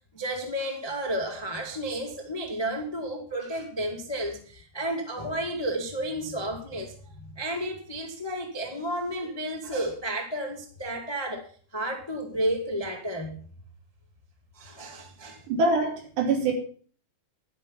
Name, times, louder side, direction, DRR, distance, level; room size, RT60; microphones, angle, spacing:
voice 1, 0.1-11.5 11.7-13.3 14.5-15.4, right 1 dB, 15° left, 2 dB, 0.7 m, -32 dB
voice 2, 15.5-16.5, right 3 dB, 85° right, 2 dB, 5.2 m, -24 dB
11.0 x 10.5 x 5.8 m, 0.43 s
omnidirectional pair, 4.8 m